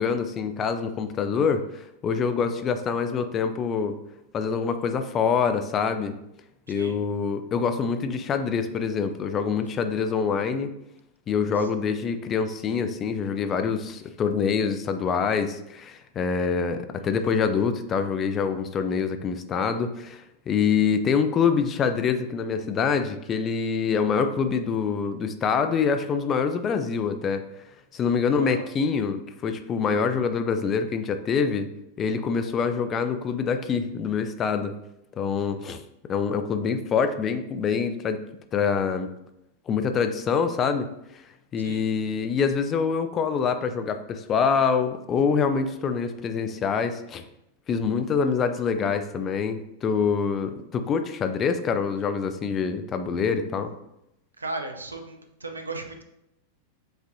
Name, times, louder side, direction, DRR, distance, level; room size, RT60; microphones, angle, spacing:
voice 1, 0.0-3.9 4.3-6.1 6.7-10.7 11.3-27.4 27.9-31.7 32.0-34.7 35.2-35.8 36.1-38.2 38.5-39.1 39.7-40.9 41.1-41.2 41.5-47.2 47.7-53.7, left 6 dB, 25° left, 9 dB, 0.4 m, -25 dB
voice 2, 28.2-28.7 35.5-35.7 41.6-41.8 54.4-56.0, right 3 dB, 80° right, 5 dB, 0.5 m, -36 dB
7.7 x 2.6 x 2.6 m, 0.84 s
figure-of-eight pair, 90°, 0 cm